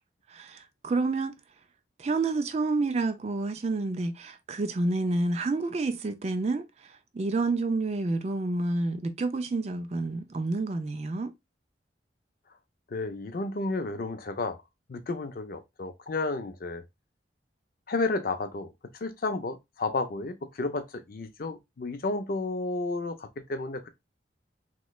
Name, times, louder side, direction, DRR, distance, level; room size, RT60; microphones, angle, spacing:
voice 1, 0.3-1.4 2.0-11.3, right 3 dB, 35° right, 0.3 m, -29 dB
voice 2, 12.9-14.6 14.9-16.8 17.9-18.7 19.0-23.9, left 3 dB, 50° left, 0.5 m, -32 dB
3.1 x 3.0 x 2.3 m
head